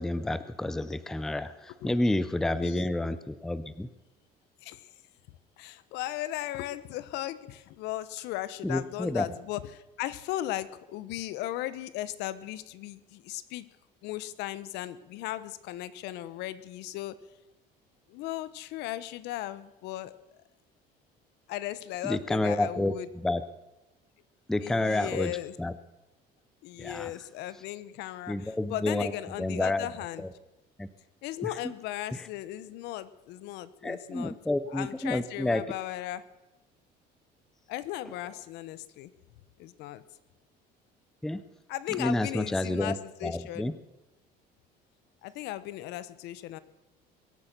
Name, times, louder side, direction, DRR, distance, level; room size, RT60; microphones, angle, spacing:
voice 1, 0.0-3.9 8.6-9.3 22.0-23.4 24.5-25.3 25.6-25.7 26.8-27.1 28.3-29.1 29.4-29.9 30.2-30.3 30.8-30.9 31.4-31.5 32.1-32.2 33.8-35.7 41.2-41.4 42.0-43.0 43.2-43.7, left 2 dB, 5° left, 13 dB, 0.4 m, -29 dB
voice 2, 4.6-4.9 5.6-13.7 14.0-17.2 18.1-20.2 21.5-23.1 24.6-25.6 26.6-30.2 31.2-34.4 34.7-36.2 37.7-39.1 39.6-40.0 41.7-43.7 45.2-46.6, left 14 dB, 75° left, 16 dB, 0.9 m, -37 dB
22.5 x 8.5 x 6.7 m, 1.0 s
cardioid pair, 170°, 18 cm